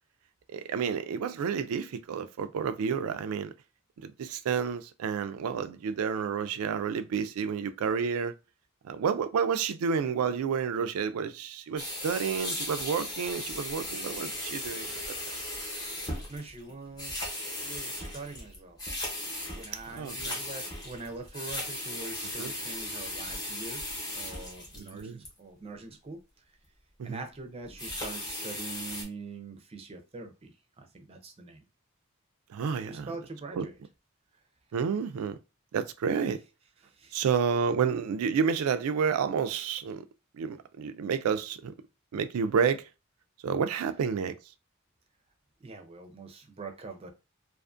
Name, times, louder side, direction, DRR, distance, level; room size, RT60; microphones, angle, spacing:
voice 1, 0.5-3.5 4.0-8.3 8.8-15.0 19.9-20.4 22.4-22.5 24.8-25.2 27.0-27.2 32.5-33.1 33.5-33.7 34.7-35.4 35.7-36.4 37.1-40.0 40.3-41.7 42.1-42.9 43.4-44.3, right 6 dB, 90° right, 0.3 m, -30 dB
sound 1, 11.8-25.3 27.6-29.0, left 1 dB, 20° left, 0.8 m, -37 dB
voice 2, 16.3-18.8 19.5-23.8 24.1-26.2 27.0-31.6 32.7-33.8 36.8-37.2 45.6-47.1, right 3 dB, 30° right, 0.5 m, -43 dB
2.5 x 2.4 x 2.4 m
head